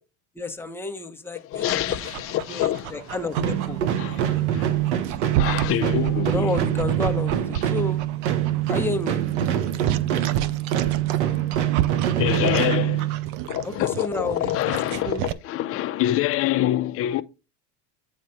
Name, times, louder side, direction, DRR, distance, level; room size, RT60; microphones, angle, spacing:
voice 1, 0.4-2.0 2.5-4.3 6.3-8.0 8.5-9.3 13.6-14.5 15.0-15.3, left 3 dB, 5° left, 0.9 m, -31 dB
voice 2, 1.4-3.0 4.0-4.7 5.4-6.6 12.2-13.2 13.5-17.2, left 14 dB, 40° left, 0.6 m, -26 dB
Dog, 1.5-15.3, right 12 dB, 65° right, 0.7 m, -33 dB
sound 1, 3.3-13.5, right 11 dB, 80° right, 1.1 m, -24 dB
8.8 x 3.1 x 5.5 m
supercardioid pair, 100°, 34 cm